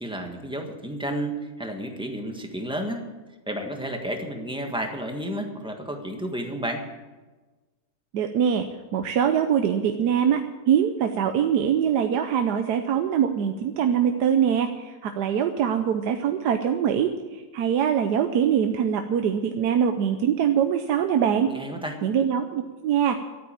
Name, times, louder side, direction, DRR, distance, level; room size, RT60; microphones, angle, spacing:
voice 1, 0.0-3.0 3.5-6.8 21.5-22.0, right 1 dB, 5° right, 3 dB, 1.4 m, -31 dB
voice 2, 8.1-8.7 8.9-21.5 22.0-23.2, right 8 dB, 80° right, 6 dB, 1.3 m, -23 dB
12.5 x 9.3 x 8.8 m, 1.3 s
omnidirectional pair, 1.7 m